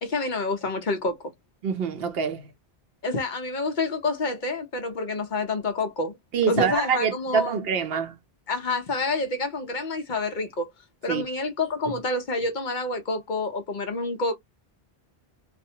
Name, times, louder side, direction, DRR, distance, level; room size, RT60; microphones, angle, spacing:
voice 1, 0.0-1.2 3.0-6.2 6.5-7.6 8.5-10.7 11.0-14.3, left 3 dB, 55° left, 0.8 m, -28 dB
voice 2, 1.6-2.4 6.3-8.1 11.1-11.2, right 6 dB, 70° right, 0.8 m, -25 dB
2.4 x 2.0 x 2.7 m
omnidirectional pair, 1.0 m